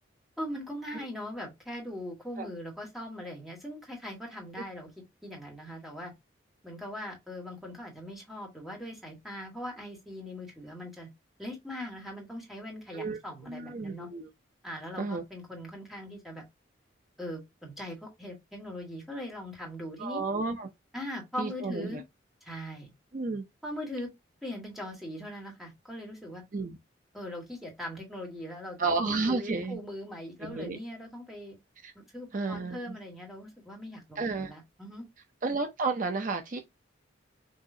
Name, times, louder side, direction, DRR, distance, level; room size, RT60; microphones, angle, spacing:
voice 1, 0.4-4.9 5.2-6.1 6.6-11.1 11.4-14.1 14.6-16.5 17.2-20.2 20.9-22.0 22.4-22.9 23.6-24.1 24.4-26.4 27.1-31.6 32.0-35.0, left 1 dB, ahead, 1.9 m, -40 dB
voice 2, 13.5-14.3 15.0-15.2 20.0-20.7 21.4-22.0 23.1-23.5 26.5-26.8 28.8-29.8 30.4-30.8 31.8-31.9 32.3-33.0 34.2-34.5 35.4-36.6, right 3 dB, 40° right, 0.6 m, -31 dB
6.3 x 3.0 x 2.7 m
head